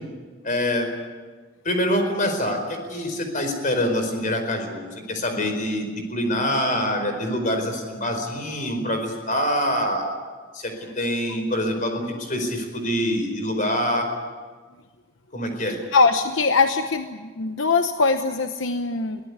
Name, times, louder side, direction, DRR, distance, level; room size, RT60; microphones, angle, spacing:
voice 1, 0.4-0.9 1.6-10.1 10.5-14.1 15.3-15.8, equal, 40° left, 5 dB, 4.7 m, -25 dB
voice 2, 15.9-19.2, left 4 dB, 75° left, 8 dB, 0.9 m, -21 dB
23.0 x 17.5 x 9.6 m, 1.5 s
head